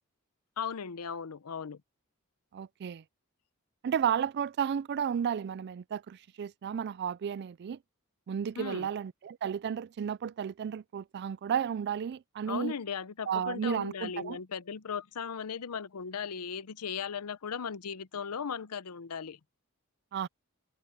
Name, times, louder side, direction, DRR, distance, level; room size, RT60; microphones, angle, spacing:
voice 1, 0.6-1.8 8.6-8.9 12.5-19.4, left 6 dB, 85° left, 0.7 m, -37 dB
voice 2, 2.5-3.0 3.8-7.8 8.3-12.7 13.3-14.4 20.1-20.3, right 8 dB, 50° right, 0.3 m, -33 dB
open air
head